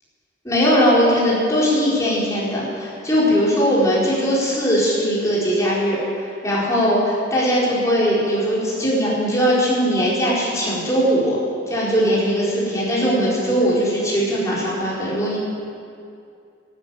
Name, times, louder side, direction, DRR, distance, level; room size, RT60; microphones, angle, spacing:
voice 1, 0.4-11.4 11.7-15.4, equal, 15° left, -7 dB, 4.5 m, -20 dB
12.5 x 12.0 x 9.0 m, 2.5 s
head